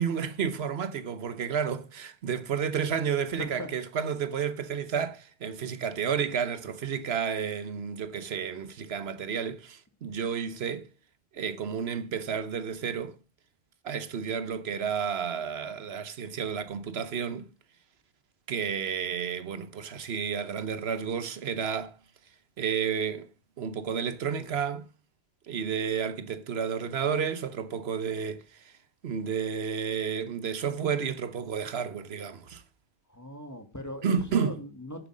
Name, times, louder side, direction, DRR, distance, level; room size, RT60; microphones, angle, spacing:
voice 1, 0.0-10.9 11.3-13.2 13.8-17.5 18.5-22.0 22.6-23.3 23.6-24.8 25.5-28.7 29.0-32.6 34.0-34.6, right 7 dB, 80° right, 1.1 m, -31 dB
voice 2, 33.1-35.1, left 1 dB, 15° left, 2.0 m, -39 dB
9.3 x 7.8 x 6.3 m
omnidirectional pair, 1.0 m